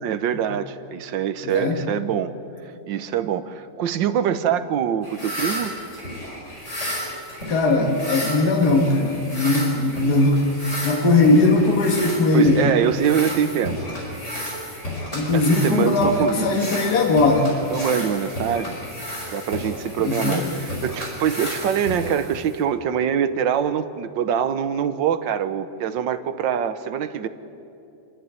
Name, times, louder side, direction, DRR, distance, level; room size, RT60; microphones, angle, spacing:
voice 1, 0.0-2.3 2.6-5.7 12.3-13.8 15.3-16.7 17.7-18.8 19.3-27.3, right 8 dB, 85° right, 12 dB, 1.6 m, -24 dB
voice 2, 1.4-1.8 7.5-12.7 15.1-17.5 20.0-20.4, left 2 dB, 60° left, 1 dB, 2.3 m, -19 dB
sound 1, 5.0-22.6, equal, 40° left, 5.2 m, -32 dB
28.5 x 11.5 x 9.5 m, 2.7 s
omnidirectional pair, 2.0 m